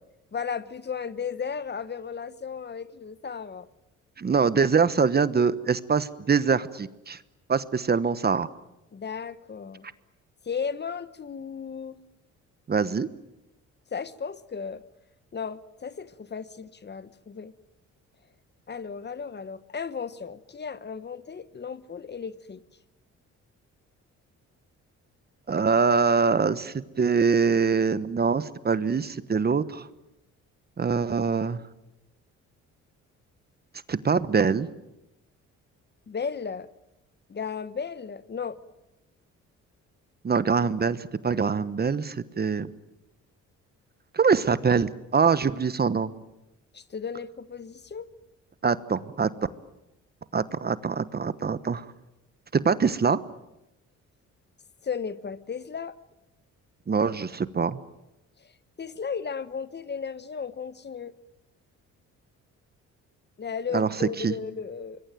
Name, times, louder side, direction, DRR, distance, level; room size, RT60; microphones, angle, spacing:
voice 1, 0.3-3.7 8.9-9.9 10.4-12.0 13.9-14.8 15.3-17.5 18.7-22.6 36.1-36.7 37.3-38.6 46.7-48.1 54.8-55.9 58.4-58.5 58.8-61.1 63.4-65.0, left 6 dB, 35° left, 15 dB, 1.2 m, -35 dB
voice 2, 4.2-7.2 7.5-8.5 12.7-13.1 25.5-29.9 30.8-31.6 33.9-34.7 40.2-42.7 44.1-46.1 48.6-49.3 50.3-51.8 52.5-53.2 56.9-57.8 63.7-63.9 64.2-64.3, right 5 dB, 30° right, 15 dB, 1.1 m, -24 dB
25.5 x 22.0 x 9.2 m, 0.92 s
cardioid pair, 90°, 30 cm